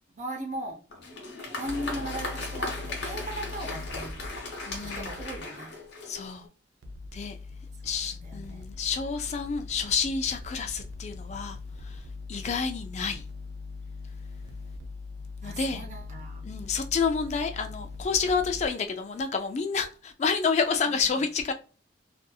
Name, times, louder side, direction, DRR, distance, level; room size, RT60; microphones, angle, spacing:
voice 1, 0.2-0.8 1.6-4.1 4.8-5.7 7.8-8.7 15.4-16.4 20.9-21.2, right 1 dB, 40° right, 0.8 m, -38 dB
Applause, 0.9-6.5, left 3 dB, 65° left, 0.9 m, -37 dB
sound 1, 1.6-5.4 6.8-18.7, left 3 dB, 80° right, 0.5 m, -41 dB
voice 2, 4.6-5.1 6.0-6.5 7.1-7.4 7.8-12.0 12.3-13.2 15.4-15.8 16.4-21.5, left 5 dB, 35° left, 0.3 m, -29 dB
2.6 x 2.6 x 2.3 m
head